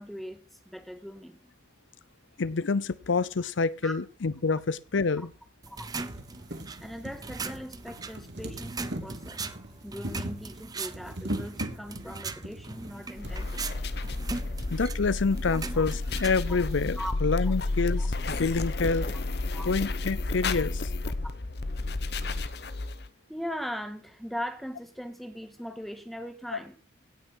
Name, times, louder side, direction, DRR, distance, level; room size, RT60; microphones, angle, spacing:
voice 1, 0.0-1.5 3.8-3.9 5.2-5.3 5.7-5.9 6.8-9.4 9.8-13.8 15.7-15.9 17.0-17.1 18.0-18.1 19.5-19.7 23.3-26.8, equal, ahead, 6 dB, 1.8 m, -39 dB
voice 2, 2.4-5.3 14.7-19.1 19.7-20.8 26.5-26.6, left 4 dB, 90° left, 19 dB, 0.7 m, -27 dB
sound 1, 3.8-3.9 4.9-5.0 5.4-5.5 5.8-13.4 14.3-14.4 14.6-14.7, right 1 dB, 65° right, 2.6 m, -39 dB
sound 2, 5.6-17.1, right 4 dB, 20° right, 0.7 m, -40 dB
sound 3, 13.2-23.1, left 2 dB, 55° left, 1.0 m, -31 dB
17.0 x 6.6 x 6.3 m, 0.35 s
head